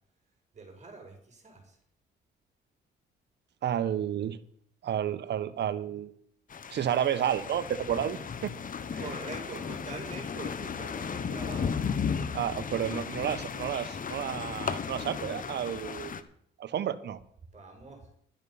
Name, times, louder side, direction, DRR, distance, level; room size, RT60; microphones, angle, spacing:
voice 1, 0.5-1.8 9.0-11.8 17.5-18.1, right 3 dB, 35° right, 2 dB, 5.4 m, -44 dB
voice 2, 3.6-4.4 4.8-6.1 6.7-8.5 8.9-9.0 12.3-16.1 16.6-17.2, right 10 dB, 60° right, 14 dB, 1.0 m, -31 dB
sound 1, 6.5-16.2, left 6 dB, 45° left, 1.1 m, -35 dB
11.5 x 10.5 x 5.6 m, 0.64 s
cardioid pair, 90°, 20 cm